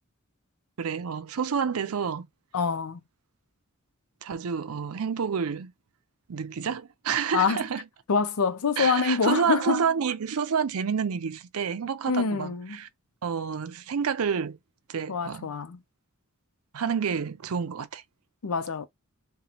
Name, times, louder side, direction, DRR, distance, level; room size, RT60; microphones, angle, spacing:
voice 1, 0.8-2.3 4.2-5.7 6.3-7.8 8.8-12.9 13.2-14.6 14.9-15.5 16.7-18.0, right 6 dB, 80° right, 0.5 m, -29 dB
voice 2, 2.5-3.0 7.3-7.6 8.1-9.8 12.1-12.8 15.1-15.8 18.4-18.9, left 5 dB, 85° left, 0.6 m, -26 dB
2.9 x 2.2 x 4.1 m
head